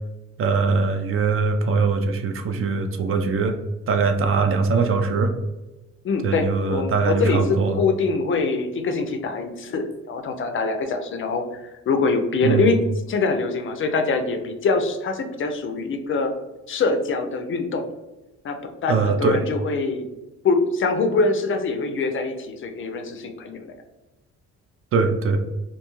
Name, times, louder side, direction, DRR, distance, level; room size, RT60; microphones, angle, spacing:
voice 1, 0.4-3.6 3.9-5.3 6.2-7.8 12.4-12.7 18.9-19.4 24.9-25.4, right 4 dB, 45° right, 6 dB, 0.4 m, -21 dB
voice 2, 6.0-12.8 13.1-16.3 16.7-17.8 18.4-20.0 20.4-23.7, left 4 dB, 45° left, 6 dB, 0.4 m, -24 dB
2.5 x 2.3 x 3.0 m, 1.1 s
cardioid pair, 90°, 30 cm